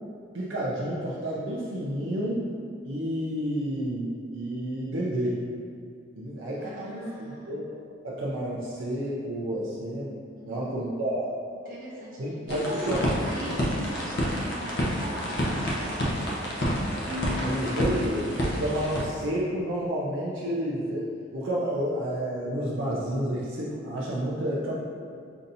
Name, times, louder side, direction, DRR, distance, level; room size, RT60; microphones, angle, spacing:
voice 1, 0.3-2.5 2.8-5.4 6.1-7.6 8.0-10.2 10.4-11.3 12.2-13.0 17.4-21.1 21.3-24.7, equal, 75° right, -6 dB, 0.6 m, -30 dB
voice 2, 6.6-7.6 10.3-11.0 11.5-16.9, right 1 dB, 45° right, -7 dB, 1.0 m, -40 dB
sound 1, 12.5-19.0, equal, 60° left, 0.7 m, -29 dB
Keyboard (musical), 17.0-18.9, left 3 dB, 20° right, 1.0 m, -37 dB
5.6 x 2.6 x 2.7 m, 2.3 s
head